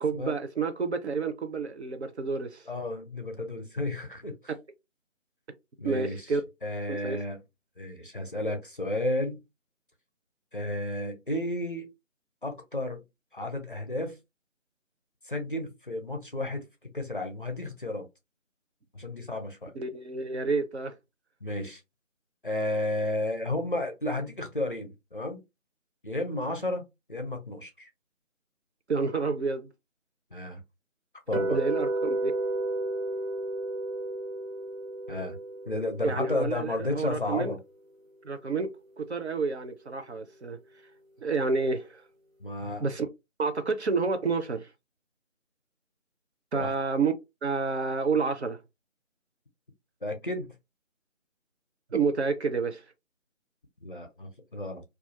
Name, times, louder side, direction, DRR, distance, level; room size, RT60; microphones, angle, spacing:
voice 1, 0.0-2.6 4.5-4.6 5.8-6.4 6.9-7.2 19.7-20.9 28.9-29.7 31.5-32.3 36.0-37.6 38.2-38.7 39.0-40.6 41.2-42.0 42.8-43.1 43.4-44.7 46.5-47.1 47.4-48.6 51.9-52.8, right 4 dB, 60° right, 0.5 m, -29 dB
voice 2, 2.7-4.3 5.8-6.3 6.6-7.4 7.8-9.4 10.5-11.9 12.4-13.0 13.3-14.2 15.3-16.6 16.9-18.1 18.9-19.7 21.4-21.8 22.4-25.4 26.0-27.9 30.3-30.6 31.3-31.6 35.1-35.4 35.7-37.6 42.4-42.9 46.5-46.7 50.0-50.5 53.8-54.8, left 1 dB, 45° left, 0.5 m, -32 dB
sound 1, 31.3-37.4, right 2 dB, 80° right, 0.8 m, -33 dB
2.3 x 2.1 x 2.7 m
figure-of-eight pair, 160°, 39 cm